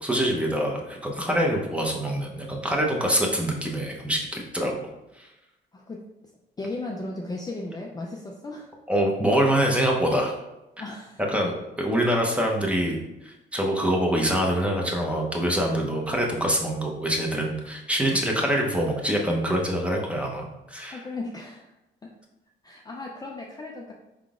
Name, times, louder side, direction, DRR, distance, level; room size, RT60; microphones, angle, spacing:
voice 1, 0.0-4.9 5.2-5.3 8.9-10.3 11.3-13.0 13.2-21.0, equal, 5° right, -1 dB, 0.8 m, -25 dB
voice 2, 5.7-6.1 6.6-8.7 10.8-11.2 20.9-21.7 22.0-22.1 22.6-23.9, left 2 dB, 20° left, -1 dB, 0.5 m, -36 dB
4.7 x 3.7 x 2.4 m, 0.96 s
cardioid pair, 90°, 20 cm